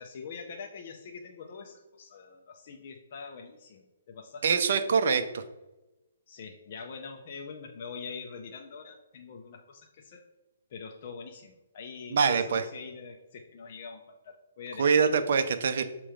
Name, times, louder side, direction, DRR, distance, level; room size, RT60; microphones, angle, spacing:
voice 1, 0.0-4.9 6.3-10.2 10.7-14.9, left 5 dB, 35° left, 2 dB, 0.5 m, -44 dB
voice 2, 4.4-5.4 12.1-12.6 14.8-15.8, right 6 dB, 50° right, 9 dB, 0.6 m, -24 dB
6.5 x 3.0 x 4.9 m, 1.0 s
hypercardioid pair, 175°, 0 cm